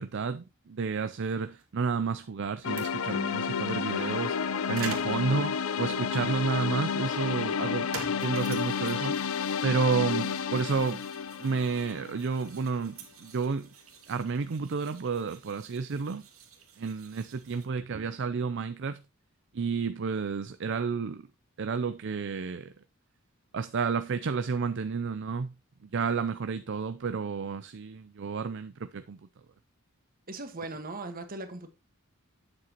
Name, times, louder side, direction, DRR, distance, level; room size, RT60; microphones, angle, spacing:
voice 1, 0.0-7.9 8.2-9.2 9.6-11.0 11.4-13.7 14.1-16.2 16.8-19.0 19.5-21.3 21.6-22.7 23.5-25.5 25.8-29.2, right 5 dB, 60° right, 0.5 m, -31 dB
sound 1, 1.2-17.7, right 5 dB, 85° right, 2.2 m, -48 dB
sound 2, 2.6-12.6, left 6 dB, 80° left, 0.6 m, -31 dB
voice 2, 30.3-31.7, right 2 dB, 45° right, 1.5 m, -38 dB
8.6 x 7.6 x 2.9 m
head